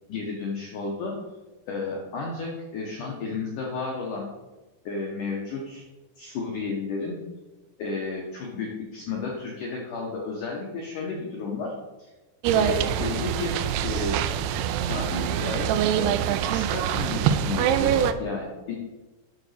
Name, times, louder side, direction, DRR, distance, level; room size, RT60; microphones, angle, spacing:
voice 1, 0.1-1.2 1.7-4.3 4.9-5.8 6.2-7.2 7.8-11.7 12.0-12.1 12.6-14.2 14.8-16.1 16.5-18.8, left 3 dB, 80° left, -2 dB, 1.8 m, -32 dB
sound 1, 12.4-18.1, right 9 dB, 90° right, 2.3 m, -24 dB
9.5 x 3.9 x 6.5 m, 1.1 s
omnidirectional pair, 5.3 m